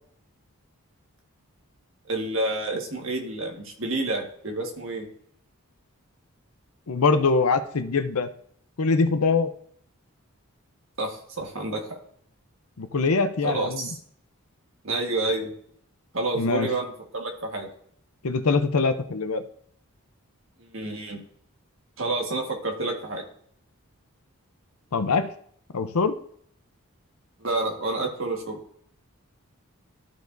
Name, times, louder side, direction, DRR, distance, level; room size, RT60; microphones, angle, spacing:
voice 1, 2.1-5.1 11.0-12.0 13.4-14.0 14.8-15.5 16.1-17.7 20.6-21.2 22.0-23.2 27.4-28.6, right 2 dB, 60° right, 1 dB, 1.6 m, -29 dB
voice 2, 6.9-8.3 8.8-9.5 12.8-13.9 16.3-16.7 18.2-19.4 24.9-25.3 25.7-26.2, left 4 dB, 80° left, 10 dB, 0.7 m, -23 dB
13.5 x 4.9 x 2.6 m, 0.64 s
head